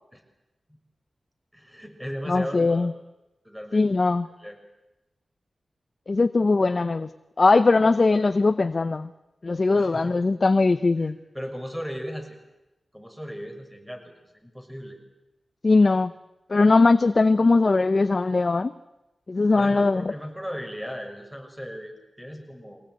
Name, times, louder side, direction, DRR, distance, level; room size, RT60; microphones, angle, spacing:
voice 1, 1.5-2.9 3.4-3.9 4.4-4.6 9.8-10.2 11.0-12.4 12.9-14.1 14.4-15.0 19.6-22.8, equal, 5° right, 4 dB, 6.1 m, -37 dB
voice 2, 2.3-2.9 3.7-4.3 6.1-7.1 7.4-9.1 9.4-11.2 15.6-16.1 16.5-18.7 19.3-20.1, left 3 dB, 50° left, 11 dB, 0.8 m, -20 dB
23.5 x 18.5 x 9.4 m, 0.97 s
cardioid pair, 55°, 0 cm